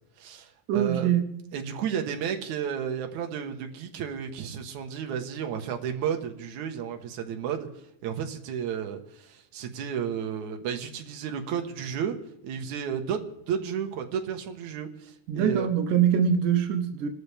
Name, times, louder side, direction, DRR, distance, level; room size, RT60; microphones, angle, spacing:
voice 1, 0.2-1.1 1.5-12.2 12.4-15.7, right 8 dB, 70° right, 2.7 m, -32 dB
voice 2, 0.7-1.3 15.3-17.1, right 8 dB, 85° right, 2.5 m, -23 dB
28.0 x 13.0 x 3.5 m
omnidirectional pair, 3.6 m